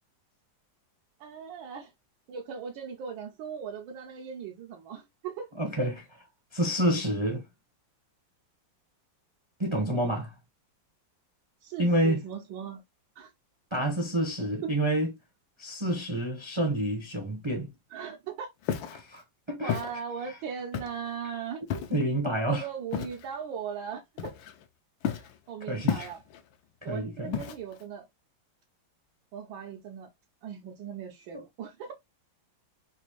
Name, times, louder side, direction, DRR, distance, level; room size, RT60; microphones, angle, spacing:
voice 1, 1.2-1.9 2.3-5.5 9.7-10.3 11.6-12.8 13.2-13.3 14.6-14.7 17.9-18.5 19.6-21.6 22.5-24.4 25.1-26.2 26.8-28.1 29.3-30.1 30.4-31.9, right 7 dB, 85° right, 1.5 m, -39 dB
voice 2, 5.6-6.1 6.5-7.4 9.6-10.3 11.8-12.2 13.7-15.1 15.6-17.7 18.9-19.2 19.5-19.8 21.9-22.7 25.7-26.1 26.8-27.4 31.3-31.4, right 1 dB, 30° right, 0.5 m, -28 dB
Walk footsteps, 18.6-19.0 19.7-19.9 20.7-21.1 21.7-22.0 22.9-23.2 24.2-24.6 25.0-25.3 25.9-26.4 27.3-27.8, left 9 dB, 80° left, 1.4 m, -32 dB
3.9 x 2.5 x 2.9 m
omnidirectional pair, 2.1 m